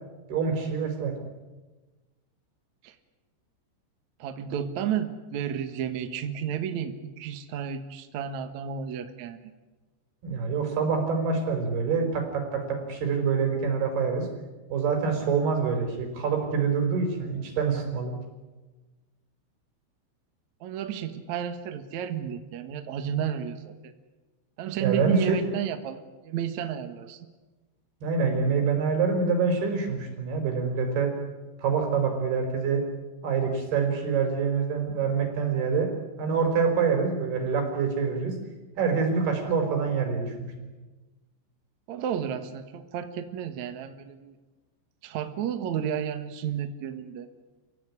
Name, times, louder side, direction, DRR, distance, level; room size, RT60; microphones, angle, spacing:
voice 1, 0.3-1.1 10.2-14.3 14.7-18.1 24.8-25.2 28.0-31.1 31.6-32.8 33.2-35.9 36.2-38.4 38.8-40.5, right 5 dB, 55° right, 3 dB, 6.6 m, -26 dB
voice 2, 4.2-9.5 20.6-23.9 24.6-27.2 41.9-44.4 45.0-47.3, right 9 dB, 70° right, 9 dB, 1.7 m, -32 dB
29.5 x 16.5 x 9.9 m, 1.2 s
omnidirectional pair, 5.5 m